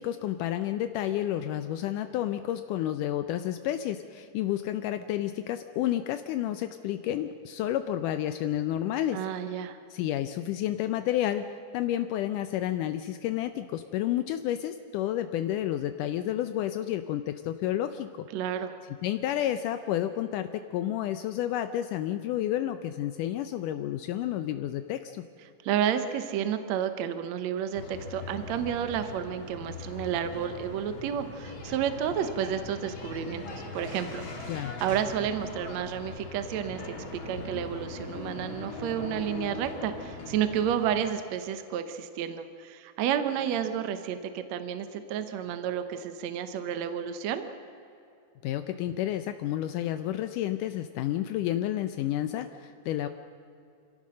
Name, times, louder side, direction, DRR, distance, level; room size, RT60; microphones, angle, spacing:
voice 1, 0.0-9.2 9.9-18.3 19.0-25.2 34.5-34.8 48.4-53.1, left 12 dB, 80° left, 9 dB, 2.1 m, -30 dB
voice 2, 9.1-9.8 18.3-18.7 25.6-34.2 34.5-36.9 37.3-47.5, right 9 dB, 65° right, 9 dB, 1.9 m, -31 dB
sound 1, 27.7-41.0, left 3 dB, 40° left, 2.7 m, -40 dB
26.0 x 16.5 x 6.4 m, 2.6 s
omnidirectional pair, 3.9 m